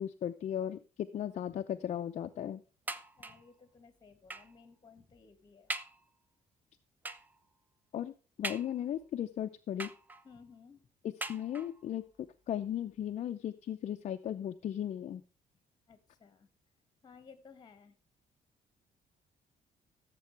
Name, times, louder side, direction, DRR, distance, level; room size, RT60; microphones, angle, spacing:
voice 1, 0.0-2.6 7.9-8.1 8.4-9.9 11.3-15.2, left 10 dB, 50° left, 7 dB, 0.6 m, -36 dB
sound 1, 2.9-3.5 4.3-4.6 5.1-5.2 5.7-6.1 7.0-7.4 8.4-9.1 9.8-10.4 11.2-11.9 12.7-12.8 13.1-13.2, right 2 dB, 10° right, 0.6 m, -42 dB
voice 2, 3.2-5.7 10.2-10.9 15.9-16.5 17.0-18.0, left 5 dB, 25° left, 10 dB, 2.0 m, -57 dB
16.0 x 7.6 x 3.4 m, 0.36 s
cardioid pair, 155°, 15 cm